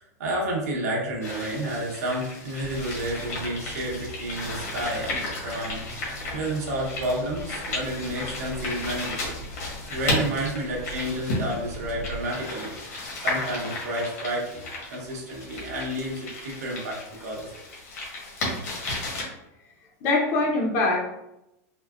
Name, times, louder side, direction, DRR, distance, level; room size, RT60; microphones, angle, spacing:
voice 1, 0.2-5.8 6.3-9.4 9.9-17.5, right 1 dB, 90° right, -3 dB, 1.3 m, -30 dB
sound 1, 1.2-19.2, left 2 dB, 75° left, 1.3 m, -34 dB
sound 2, 2.6-12.2, equal, 35° right, 0.6 m, -41 dB
voice 2, 20.0-21.0, left 2 dB, 30° left, -1 dB, 0.7 m, -23 dB
4.2 x 2.3 x 2.4 m, 0.86 s
supercardioid pair, 175°, 9 cm